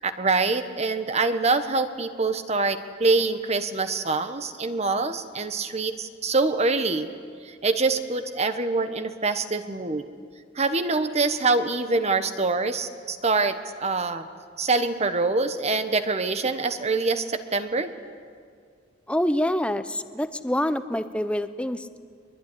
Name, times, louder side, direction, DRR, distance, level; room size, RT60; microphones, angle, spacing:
voice 1, 0.0-7.1 7.4-10.0 10.5-14.3 14.6-17.9, right 3 dB, 35° right, 9 dB, 1.2 m, -25 dB
voice 2, 19.1-22.0, left 1 dB, 5° left, 11 dB, 0.8 m, -26 dB
23.5 x 22.5 x 9.9 m, 2.1 s
head